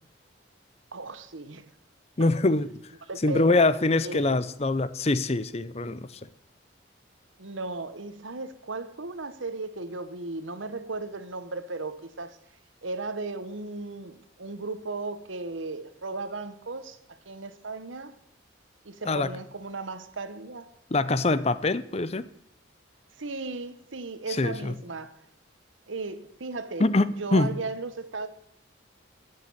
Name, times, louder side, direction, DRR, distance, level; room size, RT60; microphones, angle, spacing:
voice 1, 0.9-1.7 3.1-3.7 4.0-4.4 7.4-12.4 12.8-18.1 18.8-20.7 23.2-25.1 25.9-26.9 27.2-28.3, right 3 dB, 80° right, 1.1 m, -36 dB
voice 2, 2.2-2.7 3.2-6.0 19.1-19.3 20.9-22.3 24.4-24.7 26.8-27.6, left 2 dB, 30° left, 0.6 m, -24 dB
13.5 x 6.8 x 8.6 m
head